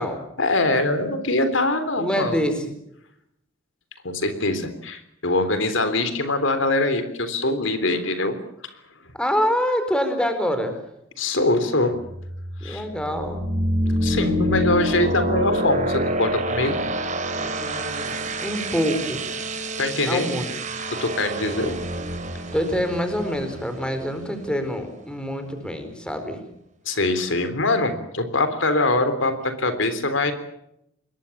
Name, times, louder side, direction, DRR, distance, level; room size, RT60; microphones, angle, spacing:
voice 1, 0.4-2.4 4.0-8.4 11.2-11.9 12.6-12.8 14.0-16.8 19.8-20.4 20.9-21.8 26.9-30.3, left 2 dB, 70° left, 10 dB, 3.5 m, -23 dB
voice 2, 2.0-2.7 9.2-10.8 12.6-13.4 17.3-19.2 20.0-20.4 22.5-26.4, equal, 5° left, 8 dB, 4.4 m, -26 dB
sound 1, 12.0-24.7, right 1 dB, 40° right, 3.6 m, -27 dB
26.5 x 21.5 x 7.2 m, 0.78 s
head